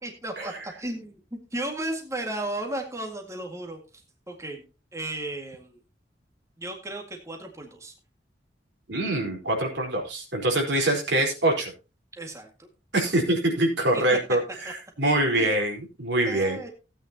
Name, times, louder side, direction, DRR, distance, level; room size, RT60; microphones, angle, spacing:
voice 1, 0.0-3.8 4.3-4.7 4.9-5.8 6.6-7.9 12.1-12.7 13.9-14.2 14.7-14.8 15.4-15.5 16.3-16.7, right 1 dB, 15° right, 2 dB, 2.0 m, -34 dB
voice 2, 8.9-11.7 12.9-16.6, right 1 dB, 80° right, 1 dB, 4.3 m, -24 dB
17.0 x 9.0 x 2.9 m, 0.30 s
head